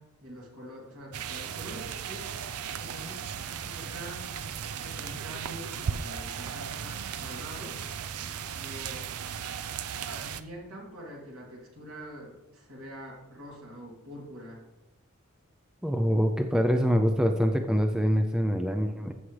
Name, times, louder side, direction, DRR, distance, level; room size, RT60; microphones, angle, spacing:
voice 1, 0.0-2.3 2.7-4.3 4.7-7.8 8.5-9.1 10.1-14.6, equal, 65° right, -3 dB, 3.0 m, -45 dB
sound 1, 1.1-10.4, right 7 dB, 85° right, 0.5 m, -36 dB
voice 2, 15.8-19.1, equal, 5° right, 5 dB, 0.4 m, -25 dB
14.0 x 7.2 x 3.3 m, 1.0 s
head